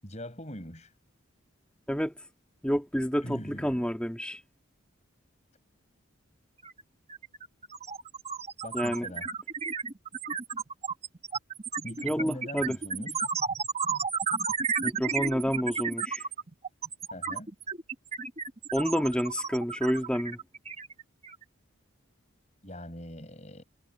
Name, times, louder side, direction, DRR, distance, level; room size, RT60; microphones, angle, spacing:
voice 1, 0.0-0.9 3.2-3.9 8.6-9.3 11.8-13.2 17.1-17.5 22.6-23.6, equal, 30° left, 7.9 m, -42 dB
voice 2, 2.6-4.4 8.7-9.1 12.0-12.8 14.8-16.2 18.7-20.4, equal, 5° left, 1.9 m, -29 dB
sound 1, 6.6-6.8 7.1-21.4, right 5 dB, 30° right, 1.2 m, -33 dB
head